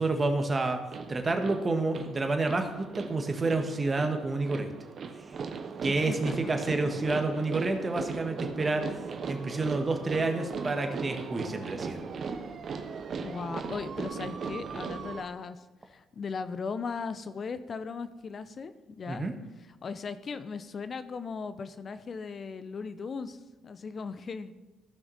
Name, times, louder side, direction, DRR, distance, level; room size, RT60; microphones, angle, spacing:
voice 1, 0.0-4.7 5.8-8.9 9.3-12.0 19.1-19.3, right 3 dB, 30° right, 5 dB, 1.6 m, -29 dB
sound 1, 0.9-15.2, right 5 dB, 55° right, 0.9 m, -38 dB
voice 2, 5.9-6.5 13.2-19.3 19.8-23.4 23.6-24.5, left 5 dB, 50° left, 12 dB, 0.7 m, -38 dB
15.0 x 5.9 x 4.1 m, 1.1 s
supercardioid pair, 55°, 0 cm